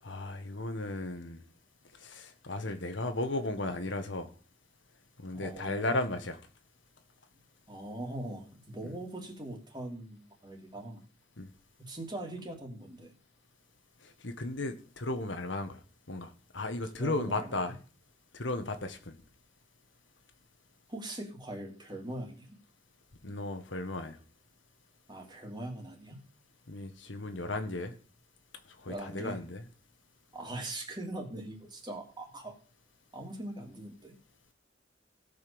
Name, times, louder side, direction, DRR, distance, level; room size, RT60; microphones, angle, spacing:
voice 1, 0.0-1.4 2.0-4.3 5.2-6.4 8.8-8.9 11.4-11.5 14.0-15.8 16.1-17.8 18.3-19.2 23.2-24.2 26.7-27.9 28.8-29.7, left 2 dB, 75° left, 7 dB, 1.6 m, -35 dB
voice 2, 5.3-6.1 7.7-11.0 11.8-13.1 17.0-17.7 20.9-22.5 25.1-26.2 28.9-29.4 30.3-32.6 33.1-34.1, right 1 dB, 25° right, 1 dB, 3.0 m, -41 dB
16.5 x 5.6 x 7.0 m, 0.39 s
head